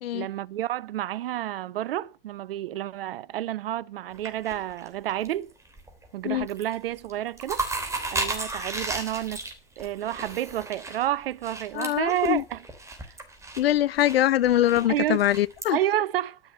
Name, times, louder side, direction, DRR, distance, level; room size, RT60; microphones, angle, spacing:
voice 1, 0.1-5.5 6.1-7.7 8.1-9.4 9.8-12.6 14.9-15.2 15.7-16.4, right 13 dB, 65° right, 0.8 m, -30 dB
sound 1, 4.1-5.3 5.7-6.1 6.3-6.7 7.0-15.7, right 2 dB, 10° right, 3.1 m, -34 dB
voice 2, 11.7-12.4 13.6-15.8, left 13 dB, 75° left, 0.5 m, -23 dB
12.0 x 7.2 x 6.7 m
hypercardioid pair, 105°, 30 cm